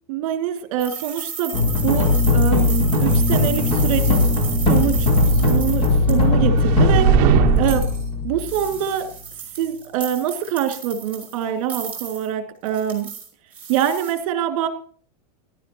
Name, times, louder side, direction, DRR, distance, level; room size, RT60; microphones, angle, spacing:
voice 1, 0.1-1.6 1.8-4.3 4.7-5.1 5.5-7.1 7.6-7.9 8.2-9.1 9.6-13.1 13.7-14.7, right 10 dB, 55° right, 8 dB, 2.4 m, -24 dB
sound 1, 0.8-6.3 7.6-8.1 8.5-11.4 11.7-12.3 12.7-14.1, right 6 dB, 5° right, 4.3 m, -34 dB
sound 2, 1.5-8.8, left 3 dB, 25° left, 3.6 m, -19 dB
sound 3, 4.3-8.0, right 9 dB, 40° right, 1.2 m, -21 dB
17.5 x 12.0 x 2.9 m, 0.43 s
supercardioid pair, 170°, 20 cm